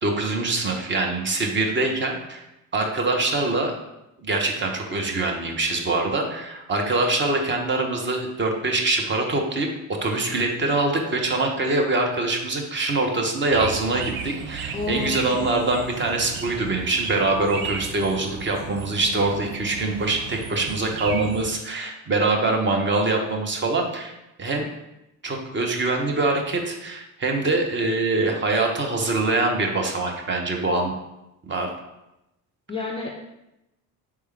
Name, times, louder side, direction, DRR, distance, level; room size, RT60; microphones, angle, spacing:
voice 1, 0.0-2.4 2.7-3.7 4.2-9.7 10.0-24.1 24.4-24.7 25.2-30.9 31.4-31.7, right 2 dB, 25° right, 2 dB, 0.8 m, -24 dB
sound 1, 13.5-21.5, right 7 dB, 50° right, 0.6 m, -35 dB
voice 2, 14.7-15.5 32.7-33.1, left 4 dB, 15° left, -1 dB, 0.4 m, -30 dB
4.3 x 3.3 x 3.2 m, 0.91 s
figure-of-eight pair, 50°, 46 cm